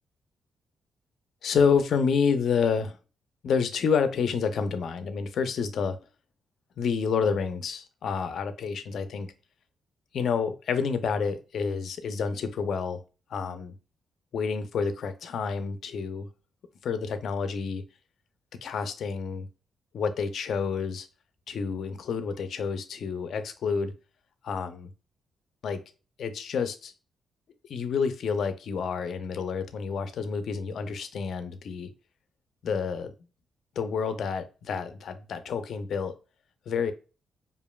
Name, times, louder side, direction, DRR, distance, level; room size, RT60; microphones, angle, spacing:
voice 1, 1.4-3.0 3.4-6.0 6.8-9.3 10.1-13.0 13.3-13.7 14.3-16.3 16.8-17.8 18.6-19.5 19.9-21.1 21.5-23.9 24.4-24.9 25.6-25.8 26.2-26.9 27.7-31.9 32.6-33.1 33.8-36.1 36.7-36.9, left 6 dB, 70° left, 10 dB, 0.5 m, -29 dB
5.0 x 2.5 x 2.3 m, 0.34 s
cardioid pair, 70°, 0 cm